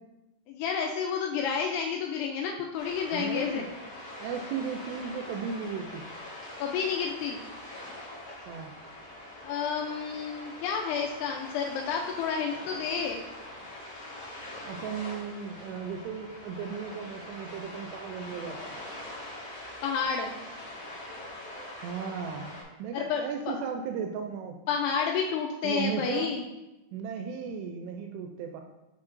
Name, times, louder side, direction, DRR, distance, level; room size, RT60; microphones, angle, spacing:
voice 1, 0.5-3.6 6.6-7.4 9.4-13.2 19.8-20.3 22.9-23.5 24.7-26.4, left 6 dB, 85° left, 1 dB, 2.4 m, -30 dB
sound 1, 2.8-22.6, left 1 dB, 40° left, 2.6 m, -43 dB
voice 2, 3.1-3.7 4.2-6.0 8.5-8.7 14.7-18.8 21.8-24.6 25.6-26.3 26.9-28.6, right 6 dB, 85° right, 4 dB, 2.5 m, -35 dB
9.7 x 4.4 x 2.5 m, 0.99 s
omnidirectional pair, 5.1 m